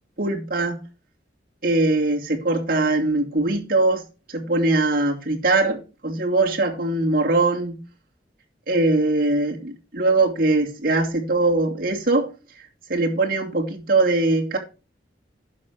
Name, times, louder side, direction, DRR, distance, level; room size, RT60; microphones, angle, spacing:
voice 1, 0.2-0.8 1.6-4.0 4.3-7.8 8.7-12.3 12.9-14.6, right 2 dB, 55° right, 2.6 m, -21 dB
10.5 x 6.6 x 6.1 m
head